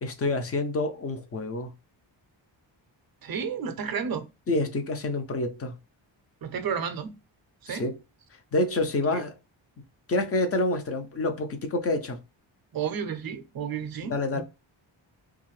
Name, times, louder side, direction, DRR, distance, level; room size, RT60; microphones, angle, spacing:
voice 1, 0.0-1.7 4.5-5.7 7.7-7.9 8.5-9.3 10.1-12.2 14.1-14.4, left 2 dB, 35° left, 0.4 m, -27 dB
voice 2, 3.2-4.3 6.4-7.2 7.6-7.9 9.1-9.2 12.7-14.4, right 7 dB, 50° right, 0.5 m, -32 dB
2.5 x 2.4 x 3.0 m
wide cardioid pair, 160°, 47 cm